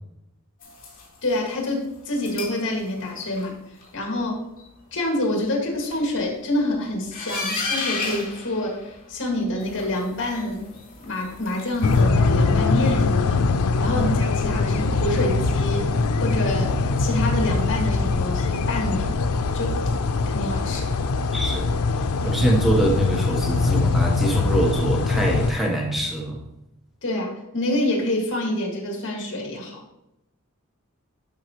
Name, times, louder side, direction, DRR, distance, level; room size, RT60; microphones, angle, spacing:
sound 1, 0.6-1.5 2.1-2.7 3.0-3.5 3.8-3.9 4.2-4.3 4.6-4.7 5.0-5.1 5.4-5.5 5.7-6.3 7.1-9.2 9.5-12.0, left 3 dB, 40° left, 3.1 m, -33 dB
voice 1, 1.2-3.6 3.9-4.4 4.9-10.6 11.0-19.1 19.5-19.8 20.3-21.0 27.0-29.8, left 1 dB, 60° left, 0 dB, 2.0 m, -27 dB
sound 2, 11.8-25.5, left 3 dB, 90° left, 0.5 m, -22 dB
voice 2, 21.3-21.7 22.2-26.4, right 1 dB, ahead, -1 dB, 1.0 m, -23 dB
12.0 x 5.6 x 3.0 m, 0.89 s
head